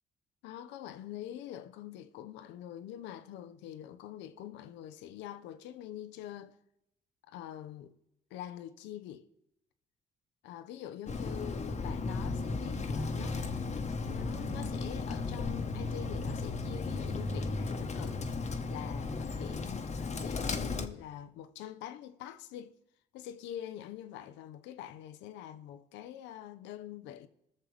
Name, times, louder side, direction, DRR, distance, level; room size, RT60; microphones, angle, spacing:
voice 1, 0.4-6.6 7.3-7.9 8.3-9.3 10.4-18.3 18.7-22.7 23.1-27.3, left 11 dB, 85° left, 0.7 m, -45 dB
Bird, 11.1-20.9, left 3 dB, 40° left, 1.1 m, -35 dB
20.0 x 6.7 x 3.3 m
supercardioid pair, 60°, 18 cm